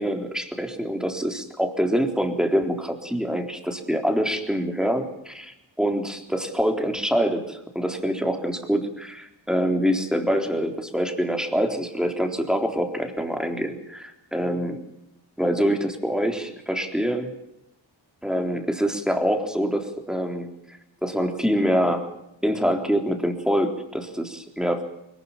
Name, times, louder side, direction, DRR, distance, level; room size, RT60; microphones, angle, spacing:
voice 1, 0.0-14.8 15.4-17.3 18.2-20.5 21.0-22.1 22.4-24.8, equal, ahead, 4 dB, 3.7 m, -25 dB
21.0 x 20.0 x 7.4 m, 0.83 s
wide cardioid pair, 60°, 45 cm